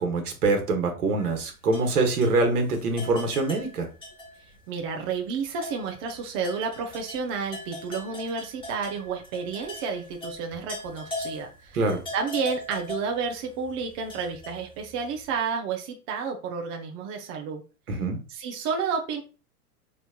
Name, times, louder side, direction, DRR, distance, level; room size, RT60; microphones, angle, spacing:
voice 1, 0.0-3.9 11.7-12.0 17.9-18.2, right 3 dB, 75° right, 4 dB, 1.2 m, -24 dB
sound 1, 1.2-4.6 4.9-5.1 5.5-15.2, left 2 dB, 10° left, 1.3 m, -40 dB
voice 2, 4.7-11.8 12.1-17.6 18.3-19.2, right 5 dB, 25° right, 2 dB, 0.3 m, -31 dB
4.2 x 3.0 x 2.3 m, 0.34 s
figure-of-eight pair, 100°, 45 cm